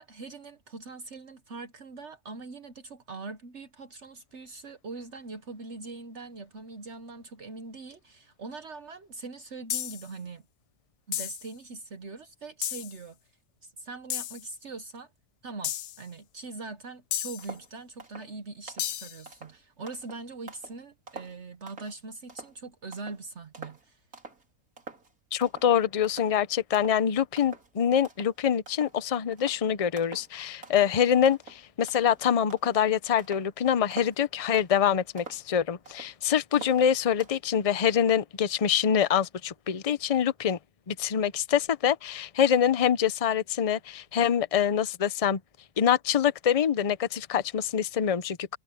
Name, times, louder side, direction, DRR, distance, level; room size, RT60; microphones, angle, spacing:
voice 1, 0.0-10.4 11.1-13.2 13.6-15.1 15.4-24.0, right 3 dB, 55° right, 1.4 m, -42 dB
sound 1, 9.7-10.1 11.1-11.5 12.6-13.0 14.1-14.4 15.6-16.0 17.1-17.5 18.8-19.2, left 12 dB, 75° left, 1.0 m, -33 dB
sound 2, 17.4-17.7 18.0-18.3 18.7-19.0 19.3-20.8 21.1-21.9 22.3-22.6 22.9-23.2 23.5-23.8 24.1-24.4 24.8-25.1 25.4-25.7 26.0-26.4 26.7-27.0 27.4-27.7 28.0-28.4 28.7-29.0 29.3-29.6 30.0-30.3 30.6-31.0 31.3-32.8 33.2-33.5 33.9-34.2 34.5-34.9 35.2-36.2 36.5-37.3, right 4 dB, 85° right, 3.6 m, -46 dB
voice 2, 25.3-40.6 40.9-45.4 45.8-48.6, left 8 dB, 35° left, 0.6 m, -25 dB
omnidirectional pair, 1.5 m